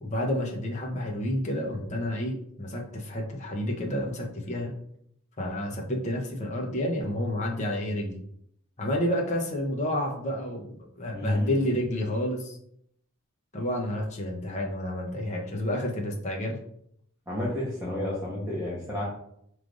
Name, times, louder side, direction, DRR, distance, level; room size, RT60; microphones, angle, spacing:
voice 1, 0.0-4.7 5.4-8.2 8.8-12.6 13.5-16.6, left 1 dB, 35° left, 0 dB, 0.7 m, -30 dB
voice 2, 11.1-11.7 17.3-19.0, left 1 dB, 10° right, -8 dB, 1.0 m, -31 dB
4.9 x 3.2 x 2.5 m, 0.72 s
head